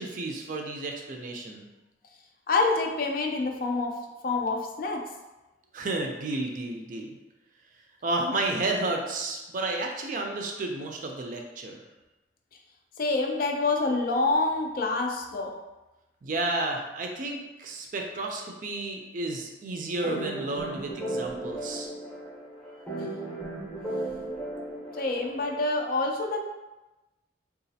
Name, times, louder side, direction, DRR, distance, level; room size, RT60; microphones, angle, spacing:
voice 1, 0.0-1.7 5.7-7.1 8.0-11.8 16.2-21.9, right 2 dB, 45° right, 2 dB, 0.4 m, -32 dB
voice 2, 2.5-5.1 13.0-15.6 24.9-26.4, left 3 dB, 50° left, 2 dB, 0.4 m, -27 dB
sound 1, 20.0-25.7, right 2 dB, 5° left, 0.6 m, -36 dB
3.9 x 2.4 x 2.7 m, 1.1 s
head